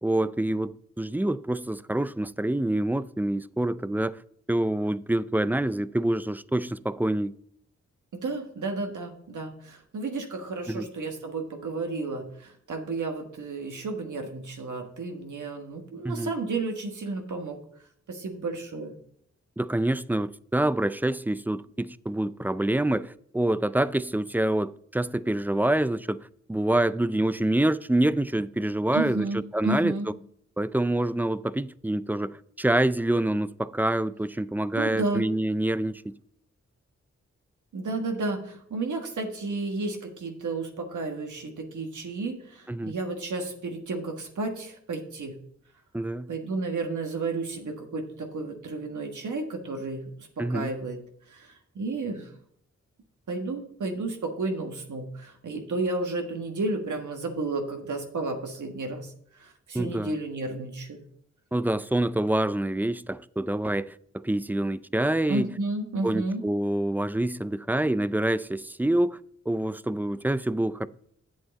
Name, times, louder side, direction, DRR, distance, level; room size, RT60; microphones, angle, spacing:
voice 1, 0.0-4.2 4.5-7.4 10.7-10.9 16.0-16.3 19.6-26.2 26.5-29.9 30.6-36.1 42.7-42.9 45.9-46.3 50.4-50.7 59.7-60.2 61.5-65.5 66.0-69.2 69.5-70.9, right 1 dB, 5° right, 0.4 m, -26 dB
voice 2, 8.1-17.6 18.1-18.9 28.9-30.1 34.7-35.2 37.7-45.4 46.3-51.0 51.3-52.3 53.3-61.0 65.3-66.4, right 3 dB, 80° right, 1.6 m, -32 dB
8.0 x 7.9 x 4.1 m
cardioid pair, 45°, 30 cm